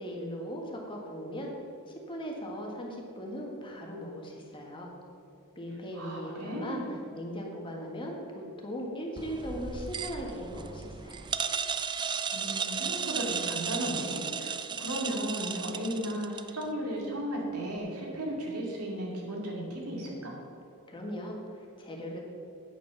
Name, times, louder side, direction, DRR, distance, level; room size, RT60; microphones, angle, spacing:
voice 1, 0.0-1.5 1.9-4.9 5.5-11.2 20.9-22.2, equal, 20° left, -1 dB, 1.7 m, -39 dB
voice 2, 5.9-6.9 12.3-20.3, right 1 dB, 85° right, -2 dB, 2.7 m, -35 dB
sound 1, 9.2-16.6, right 6 dB, 20° right, 0.4 m, -35 dB
8.9 x 8.5 x 6.0 m, 2.8 s
head